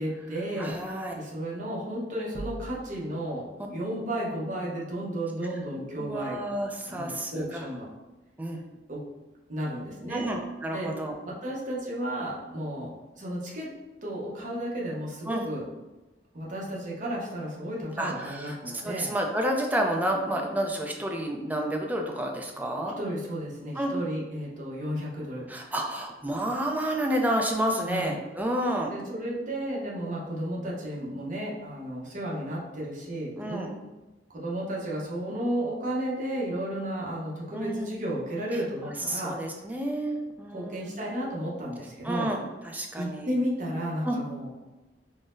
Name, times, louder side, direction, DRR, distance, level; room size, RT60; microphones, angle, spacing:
voice 1, 0.0-6.4 6.9-7.9 8.9-9.0 9.5-10.2 10.7-10.9 11.2-12.9 13.1-13.7 14.0-15.6 16.3-19.1 23.0-25.4 27.9-28.2 28.9-33.7 34.3-39.3 40.5-42.3 43.0-44.5, right 1 dB, 45° right, -4 dB, 0.8 m, -33 dB
voice 2, 0.6-1.3 5.8-7.7 8.4-8.6 10.1-11.2 15.3-15.4 18.0-18.6 18.8-23.0 23.8-23.9 25.5-28.9 33.4-33.7 37.5-38.0 39.1-41.0 42.0-43.3 44.0-44.2, right 1 dB, 10° right, 1 dB, 0.3 m, -30 dB
sound 1, 2.3-3.3, right 1 dB, 65° left, 0.6 m, -40 dB
3.8 x 2.0 x 2.5 m, 1.1 s
head